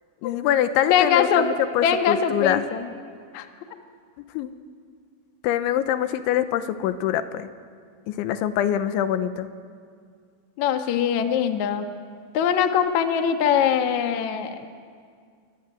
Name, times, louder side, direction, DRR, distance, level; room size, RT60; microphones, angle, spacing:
voice 1, 0.2-2.6 4.3-4.5 5.4-7.5 8.1-9.5, left 11 dB, 90° left, 11 dB, 3.3 m, -24 dB
voice 2, 0.9-1.5 1.8-2.9 3.3-3.5 10.6-11.8 12.3-14.7, left 8 dB, 60° left, 6 dB, 2.1 m, -22 dB
27.0 x 23.0 x 9.2 m, 2.2 s
omnidirectional pair, 5.3 m